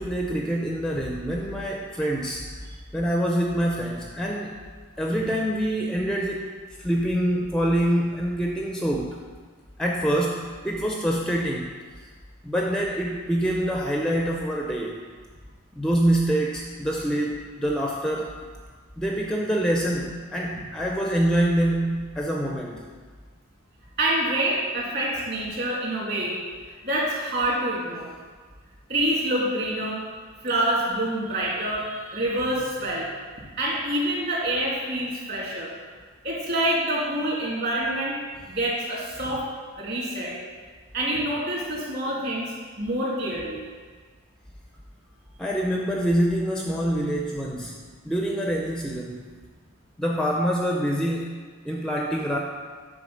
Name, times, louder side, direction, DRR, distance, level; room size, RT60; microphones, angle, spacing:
voice 1, 0.0-2.4 2.9-4.7 5.0-6.5 6.8-9.2 9.8-11.7 12.4-15.0 15.7-18.4 19.0-22.8 45.4-47.8 48.0-49.3 50.0-52.4, right 1 dB, 5° left, -1 dB, 0.4 m, -25 dB
voice 2, 24.0-26.4 26.8-28.1 28.9-30.0 30.4-33.1 33.6-35.7 36.2-38.2 38.5-39.4 39.8-40.3 40.9-43.6, right 1 dB, 45° right, -5 dB, 2.4 m, -26 dB
8.3 x 3.8 x 6.2 m, 1.5 s
head